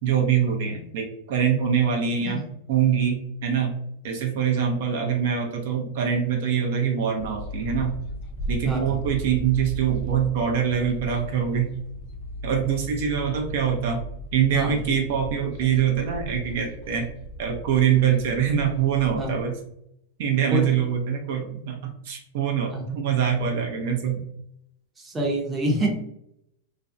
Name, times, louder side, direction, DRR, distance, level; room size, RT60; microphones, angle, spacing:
voice 1, 0.0-2.4 2.7-3.8 4.0-8.0 8.5-11.7 12.4-14.0 14.3-17.1 17.4-19.5 20.2-21.8 22.0-24.2, right 8 dB, 65° right, 1 dB, 0.5 m, -24 dB
sound 1, 7.2-19.4, right 1 dB, 45° left, 0.4 m, -37 dB
voice 2, 25.0-25.9, right 1 dB, 15° right, -1 dB, 0.6 m, -25 dB
2.5 x 2.0 x 2.5 m, 0.76 s
supercardioid pair, 135°, 0 cm